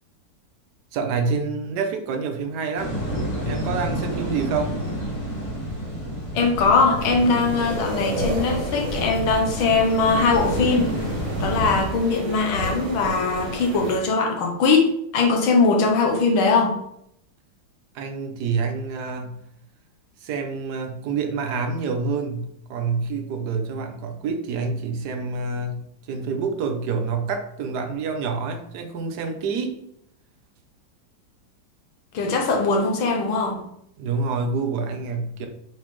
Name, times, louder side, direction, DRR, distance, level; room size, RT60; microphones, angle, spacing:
voice 1, 0.9-2.9 3.4-4.8 17.9-19.4 20.2-25.8 26.1-29.8 34.0-35.5, right 5 dB, 60° right, 4 dB, 1.4 m, -27 dB
sound 1, 2.8-11.9, equal, 20° left, 1.2 m, -30 dB
voice 2, 6.3-11.0 11.4-16.8 32.1-33.6, left 4 dB, 90° left, 3 dB, 1.8 m, -21 dB
sound 2, 7.0-14.0, right 1 dB, 80° right, 2.2 m, -31 dB
7.2 x 4.1 x 3.2 m, 0.73 s
omnidirectional pair, 2.2 m